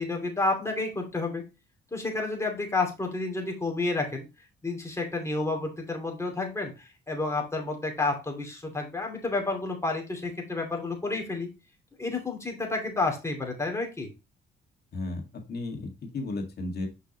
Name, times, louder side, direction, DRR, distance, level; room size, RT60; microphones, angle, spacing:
voice 1, 0.0-1.4 1.9-4.2 4.6-11.5 12.0-14.1, left 3 dB, 15° left, 1 dB, 2.7 m, -30 dB
voice 2, 14.9-16.9, left 2 dB, 55° left, 3 dB, 1.8 m, -34 dB
6.0 x 5.6 x 2.9 m, 0.27 s
cardioid pair, 90°, 20 cm